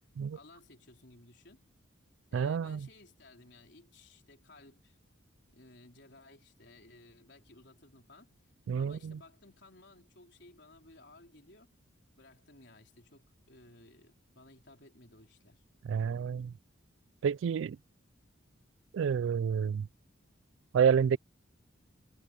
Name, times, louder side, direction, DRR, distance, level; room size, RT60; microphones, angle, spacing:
voice 1, 0.3-1.6 2.3-5.0 5.5-8.3 8.8-11.7 12.2-15.6, left 2 dB, 55° left, 4.3 m, -58 dB
voice 2, 2.3-2.8 8.7-9.0 15.9-16.5 17.2-17.8 18.9-19.9 20.7-21.2, right 7 dB, 70° right, 0.3 m, -28 dB
head